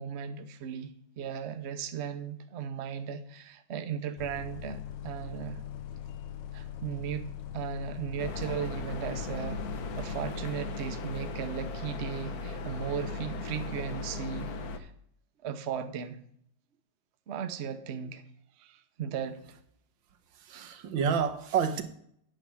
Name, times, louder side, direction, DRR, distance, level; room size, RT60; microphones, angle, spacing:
voice 1, 0.0-5.6 6.5-9.6 10.0-14.5 14.7-14.9 15.4-16.2 17.3-18.2 18.6-19.4, right 7 dB, 55° right, 9 dB, 0.8 m, -36 dB
Bus, 4.2-10.4, left 9 dB, 75° left, 1.4 m, -41 dB
sound 1, 8.2-14.8, left 3 dB, 60° left, 1.2 m, -37 dB
voice 2, 20.3-21.8, right 7 dB, 85° right, 9 dB, 1.6 m, -29 dB
9.0 x 5.9 x 6.3 m, 0.67 s
omnidirectional pair, 2.0 m